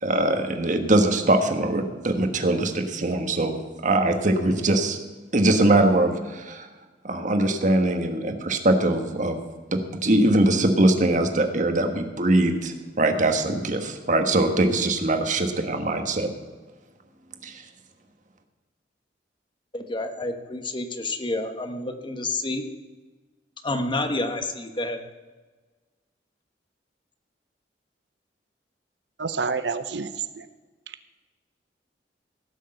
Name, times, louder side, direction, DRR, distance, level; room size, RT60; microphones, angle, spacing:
voice 1, 0.0-3.6 3.8-5.0 5.3-6.7 7.0-9.4 9.7-16.3 17.4-17.6, right 1 dB, 45° right, 6 dB, 1.4 m, -22 dB
voice 2, 19.7-22.6 23.6-25.0, left 2 dB, 30° left, 6 dB, 1.2 m, -29 dB
voice 3, 29.2-30.5, right 5 dB, 80° right, 11 dB, 0.7 m, -28 dB
16.5 x 6.5 x 7.7 m, 1.3 s
head